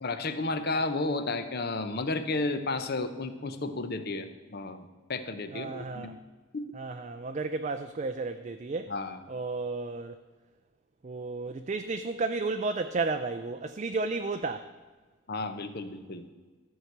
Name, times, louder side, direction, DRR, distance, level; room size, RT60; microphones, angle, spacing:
voice 1, 0.0-6.2 6.5-6.7 8.9-9.2 15.3-16.3, left 2 dB, 45° left, 9 dB, 0.8 m, -32 dB
voice 2, 5.5-6.2 6.7-8.9 9.3-10.2 11.0-14.7, right 3 dB, 30° right, 7 dB, 0.4 m, -33 dB
13.5 x 4.8 x 7.9 m, 1.4 s
head